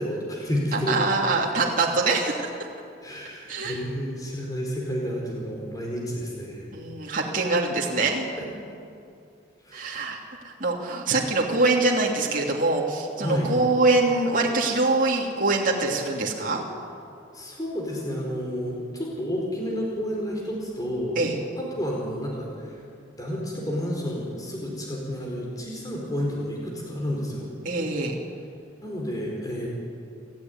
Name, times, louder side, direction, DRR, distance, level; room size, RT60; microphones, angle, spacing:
voice 1, 0.0-0.9 3.0-6.7 8.4-8.5 9.6-10.0 13.2-13.5 17.3-21.2 21.6-22.7 23.2-27.5 28.8-29.7, equal, 20° left, -2 dB, 4.5 m, -30 dB
voice 2, 0.7-2.5 3.5-3.8 6.7-8.3 9.7-16.6 21.2-21.4 27.6-28.1, right 3 dB, 45° right, -2 dB, 3.0 m, -24 dB
28.5 x 15.0 x 9.6 m, 2.5 s
head